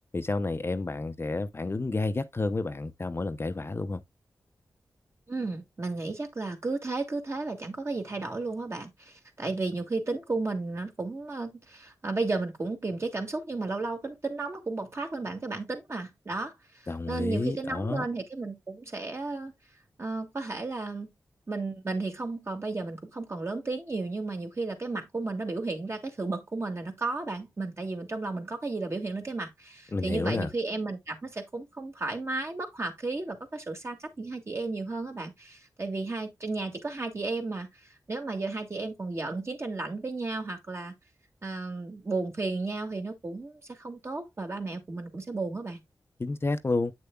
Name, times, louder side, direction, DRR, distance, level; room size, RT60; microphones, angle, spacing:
voice 1, 0.1-4.0 16.9-18.0 29.9-30.5 46.2-46.9, left 3 dB, 35° left, 0.6 m, -30 dB
voice 2, 5.3-16.5 17.1-19.5 20.0-21.1 21.5-40.9 41.4-45.8, right 3 dB, 40° right, 2.1 m, -33 dB
8.2 x 6.7 x 2.3 m
cardioid pair, 60°, 7 cm